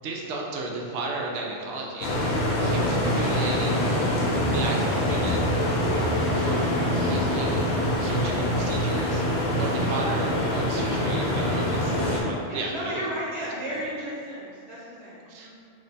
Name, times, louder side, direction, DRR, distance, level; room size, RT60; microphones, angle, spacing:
voice 1, 0.0-3.8 4.5-5.5 6.3-6.7 6.9-7.7 8.0-9.2 9.6-13.1 15.3-15.5, right 2 dB, 75° right, -1 dB, 0.8 m, -34 dB
sound 1, 2.0-12.2, left 1 dB, 65° left, 0.8 m, -24 dB
voice 2, 12.4-15.5, right 1 dB, 35° right, -9 dB, 1.2 m, -34 dB
2.9 x 2.2 x 3.9 m, 2.3 s
omnidirectional pair, 1.2 m